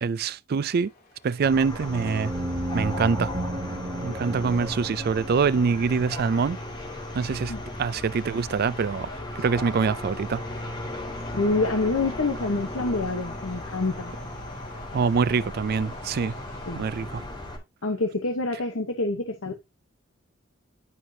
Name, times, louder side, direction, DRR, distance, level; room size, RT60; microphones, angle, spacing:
voice 1, 0.0-0.9 1.2-2.3 2.7-3.3 4.0-6.6 7.1-7.5 7.8-9.1 9.4-10.4 14.9-16.3 16.8-17.2, right 5 dB, 50° right, 0.4 m, -25 dB
Subway metro underground, 0.6-16.8, left 2 dB, 50° left, 2.8 m, -47 dB
sound 1, 1.4-17.6, left 1 dB, 20° left, 2.4 m, -36 dB
sound 2, 1.8-6.4, right 1 dB, 30° right, 0.9 m, -34 dB
voice 2, 11.3-14.1 16.7-16.8 17.8-19.5, left 3 dB, 80° left, 1.0 m, -27 dB
11.0 x 4.8 x 2.7 m
head